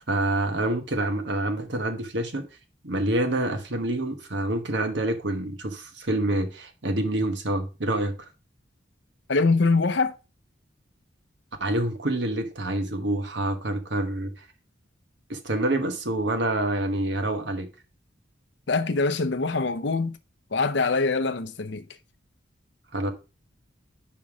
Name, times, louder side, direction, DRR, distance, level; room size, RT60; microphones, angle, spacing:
voice 1, 0.1-2.4 2.8-8.3 11.6-14.3 15.3-17.7 22.9-23.1, right 1 dB, 65° right, 1.2 m, -27 dB
voice 2, 9.3-10.2 18.7-20.2 20.5-21.8, left 3 dB, 65° left, 0.7 m, -23 dB
5.4 x 5.3 x 4.7 m
head